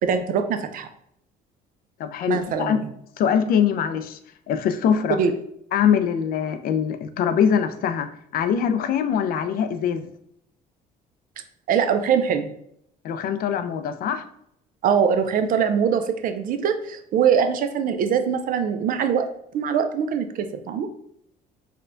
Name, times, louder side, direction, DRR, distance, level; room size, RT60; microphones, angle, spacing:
voice 1, 0.0-0.9 2.3-2.9 5.2-5.3 11.7-12.5 14.8-19.3 19.5-20.9, right 7 dB, 55° right, 8 dB, 0.4 m, -22 dB
voice 2, 2.0-2.8 3.2-4.2 4.5-5.2 5.7-10.1 13.0-14.2, left 8 dB, 60° left, 10 dB, 0.4 m, -23 dB
4.2 x 2.2 x 2.5 m, 0.73 s
cardioid pair, 110°, 17 cm